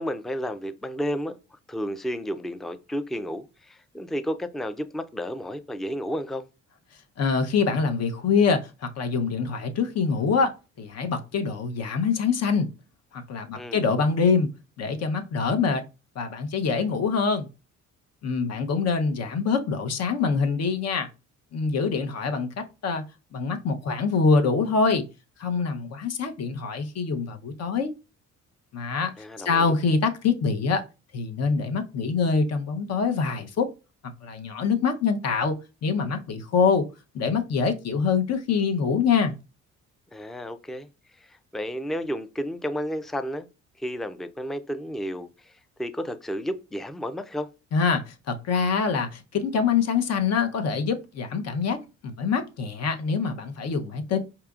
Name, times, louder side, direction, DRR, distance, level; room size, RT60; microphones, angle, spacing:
voice 1, 0.0-1.4 1.7-6.4 13.6-13.9 29.2-29.7 40.1-40.9 41.2-43.5 43.8-45.5 45.8-47.5, equal, ahead, 0.3 m, -32 dB
voice 2, 7.2-12.7 13.1-14.5 14.8-15.8 16.2-17.5 18.2-21.1 21.5-23.0 23.3-25.1 25.4-27.9 28.7-29.1 29.4-30.9 31.1-33.7 34.2-35.6 35.8-36.9 37.1-39.4 47.7-54.2, left 5 dB, 55° left, 0.8 m, -25 dB
4.8 x 2.9 x 2.4 m
cardioid pair, 90°, 30 cm